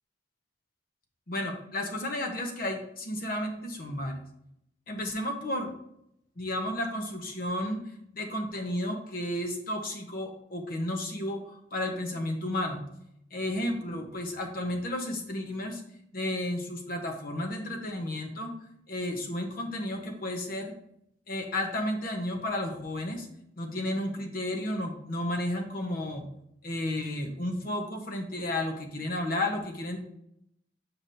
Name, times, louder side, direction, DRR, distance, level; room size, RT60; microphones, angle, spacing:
voice 1, 1.3-4.2 4.9-5.7 6.4-7.9 8.1-12.8 13.3-15.8 16.1-18.5 18.9-20.7 21.3-23.3 23.6-26.3 26.6-30.0, left 1 dB, 55° left, 3 dB, 1.0 m, -32 dB
7.4 x 5.8 x 2.7 m, 0.76 s
head